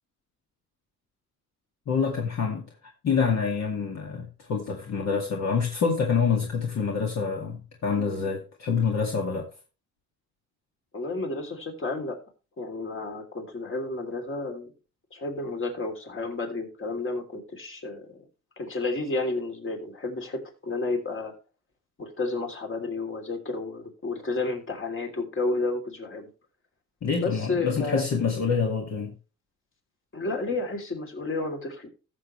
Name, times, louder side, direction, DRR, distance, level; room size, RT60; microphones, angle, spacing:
voice 1, 1.9-2.7 3.0-9.5 27.0-29.1, left 5 dB, 60° left, 2.1 m, -26 dB
voice 2, 10.9-12.2 12.6-14.7 15.1-18.1 18.6-21.3 22.0-26.3 27.1-28.1 30.1-31.9, left 3 dB, 45° left, 3.1 m, -31 dB
14.5 x 7.2 x 3.1 m
cardioid pair, 90°, 30 cm